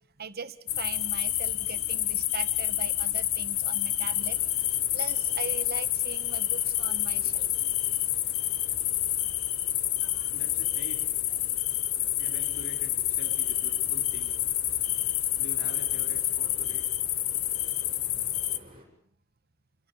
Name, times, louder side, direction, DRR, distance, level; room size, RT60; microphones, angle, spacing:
voice 1, 0.2-7.5 10.0-10.3 14.9-15.1, right 5 dB, 45° right, 12 dB, 1.4 m, -41 dB
sound 1, 0.7-18.6, left 13 dB, 70° left, 1.2 m, -28 dB
sound 2, 4.1-18.8, equal, 25° right, 7.2 m, -53 dB
voice 2, 10.3-11.0 12.2-14.4 15.4-16.9, left 1 dB, 55° left, 4 dB, 4.3 m, -46 dB
26.5 x 22.5 x 7.1 m, 0.65 s
head